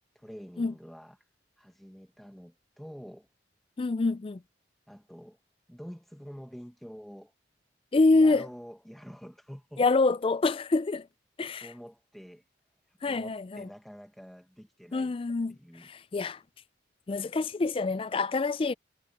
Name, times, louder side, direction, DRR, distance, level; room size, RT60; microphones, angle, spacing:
voice 1, 0.1-1.2 1.6-3.3 4.9-5.4 5.7-7.3 8.1-9.9 11.6-12.5 12.9-15.1 15.5-15.9, equal, ahead, 1.1 m, -47 dB
voice 2, 3.8-4.4 7.9-8.5 9.8-11.1 11.4-11.7 13.0-13.7 14.9-16.4 17.1-18.7, left 3 dB, 30° left, 0.4 m, -26 dB
head